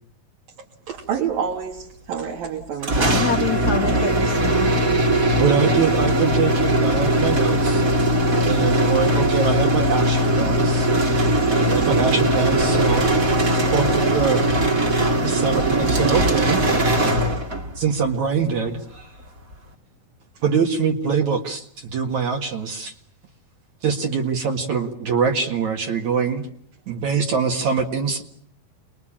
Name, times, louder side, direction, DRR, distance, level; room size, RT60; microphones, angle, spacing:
voice 1, 0.9-3.1 8.6-8.7 11.7-11.9 13.5-13.7, right 7 dB, 75° right, -1 dB, 4.5 m, -29 dB
sound 1, 2.8-17.8, right 1 dB, 30° right, 2.0 m, -20 dB
voice 2, 3.0-5.0, left 6 dB, 40° left, 4 dB, 1.4 m, -26 dB
voice 3, 5.4-7.8 8.5-10.9 11.7-13.1 13.7-14.4 15.2-16.6 17.8-19.1 20.4-22.9 23.8-26.5 26.9-28.2, right 6 dB, 55° right, 2 dB, 3.1 m, -23 dB
29.0 x 21.5 x 8.9 m, 0.66 s
omnidirectional pair, 4.3 m